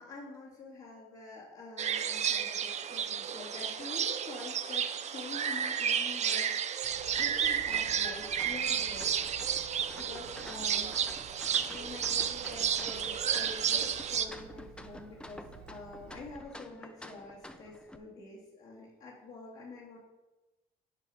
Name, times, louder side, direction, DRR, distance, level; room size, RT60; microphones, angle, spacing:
voice 1, 0.0-9.1 9.9-10.9 11.6-20.0, left 3 dB, 55° left, -6 dB, 2.1 m, -47 dB
sound 1, 1.8-14.3, right 8 dB, 40° right, 0.6 m, -32 dB
Telephone, 6.8-16.5, right 7 dB, 75° right, 1.2 m, -53 dB
sound 2, 7.1-18.0, left 1 dB, 5° left, 0.6 m, -50 dB
10.5 x 5.0 x 4.8 m, 1.1 s
cardioid pair, 110°, 17 cm